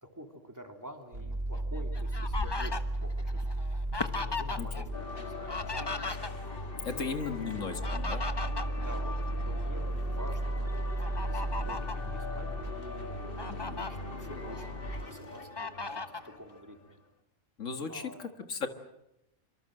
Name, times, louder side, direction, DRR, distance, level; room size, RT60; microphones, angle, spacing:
voice 1, 0.0-3.7 4.1-5.9 7.2-7.8 8.8-17.0 17.9-18.2, equal, 15° right, 4 dB, 3.1 m, -48 dB
sound 1, 1.1-14.9, right 1 dB, 50° right, 4.2 m, -35 dB
Fowl, 1.5-4.8 5.1-6.7 7.6-9.7 10.1-10.3 11.0-12.0 12.7-12.8 13.1-13.9 14.4-15.1 15.6-16.3, left 3 dB, 20° left, 1.0 m, -37 dB
sound 2, 4.9-16.9, left 2 dB, 45° left, 2.0 m, -43 dB
voice 2, 6.8-8.3 13.5-13.8 17.6-18.7, left 5 dB, 85° left, 8 dB, 2.2 m, -36 dB
25.5 x 24.5 x 7.8 m, 0.83 s
omnidirectional pair, 1.3 m